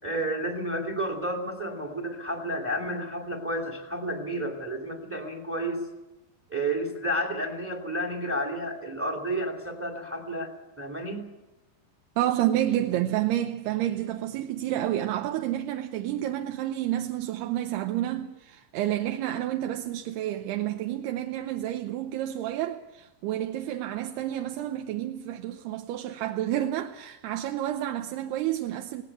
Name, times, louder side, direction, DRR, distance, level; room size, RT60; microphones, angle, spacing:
voice 1, 0.0-5.8 6.5-11.3, right 1 dB, 5° right, 1.3 m, -31 dB
voice 2, 12.2-29.0, right 12 dB, 75° right, 2.6 m, -29 dB
18.5 x 17.5 x 8.3 m
omnidirectional pair, 5.2 m